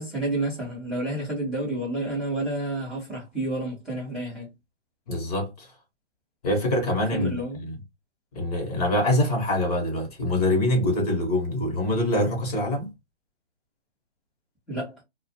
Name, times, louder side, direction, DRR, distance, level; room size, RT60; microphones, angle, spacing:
voice 1, 0.0-4.5 7.1-7.6 14.7-15.0, right 1 dB, ahead, 0.6 m, -30 dB
voice 2, 5.1-5.7 6.4-7.8 8.3-12.9, left 1 dB, 35° left, 1.0 m, -25 dB
2.4 x 2.1 x 2.7 m
hypercardioid pair, 150°, 35 cm